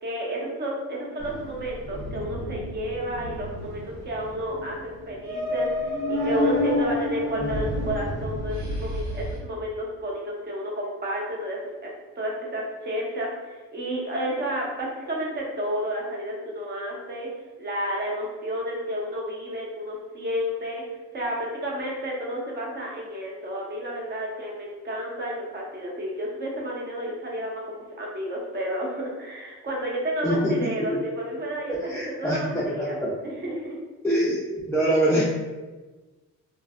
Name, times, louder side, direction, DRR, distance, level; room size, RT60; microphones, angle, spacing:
voice 1, 0.0-17.3 17.6-20.8 21.1-33.8, equal, 35° right, -3 dB, 0.7 m, -31 dB
sound 1, 1.2-9.4, left 1 dB, 90° right, 1.1 m, -30 dB
voice 2, 30.2-31.0 31.9-33.1 34.0-34.4 34.7-35.2, equal, 5° left, -8 dB, 0.5 m, -24 dB
2.5 x 2.2 x 2.4 m, 1.2 s
cardioid pair, 90°, 30 cm